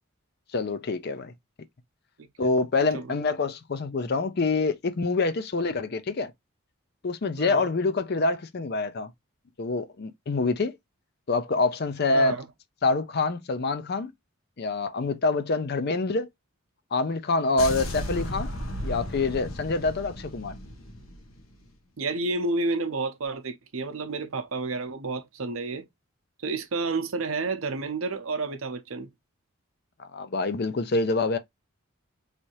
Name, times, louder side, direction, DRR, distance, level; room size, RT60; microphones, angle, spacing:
voice 1, 0.5-1.3 2.4-6.3 7.0-9.1 9.6-10.8 11.3-12.3 12.8-14.1 14.6-16.3 16.9-18.5 18.8-20.6 30.0-31.4, left 3 dB, 50° left, 0.5 m, -26 dB
voice 2, 7.4-7.7 12.1-12.5 22.0-25.8 26.4-29.1, right 3 dB, 75° right, 0.7 m, -30 dB
sound 1, 17.6-21.7, left 1 dB, 75° left, 1.0 m, -35 dB
3.3 x 2.7 x 3.0 m
head